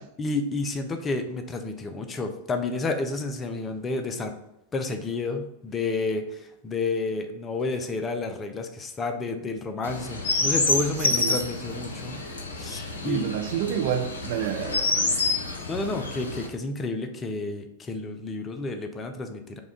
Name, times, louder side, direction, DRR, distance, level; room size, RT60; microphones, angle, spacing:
voice 1, 0.2-4.3 4.7-12.2 12.6-13.3 14.4-14.5 15.7-19.6, left 3 dB, 20° left, 6 dB, 0.5 m, -30 dB
Chirp tweet, 9.8-16.5, left 3 dB, 70° left, 0.6 m, -28 dB
voice 2, 13.0-15.2, right 9 dB, 50° right, 6 dB, 0.4 m, -29 dB
4.9 x 2.3 x 3.5 m, 0.85 s
figure-of-eight pair, 90°, 0 cm